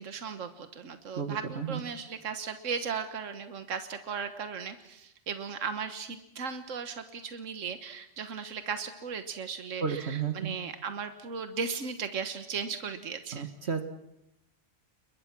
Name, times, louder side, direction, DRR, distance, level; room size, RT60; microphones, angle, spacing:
voice 1, 0.0-13.5, right 6 dB, 80° right, 9 dB, 1.6 m, -37 dB
voice 2, 1.2-1.8 9.8-10.5 13.3-13.8, right 6 dB, 60° right, 8 dB, 1.6 m, -32 dB
29.0 x 23.0 x 6.0 m, 0.81 s
omnidirectional pair, 1.3 m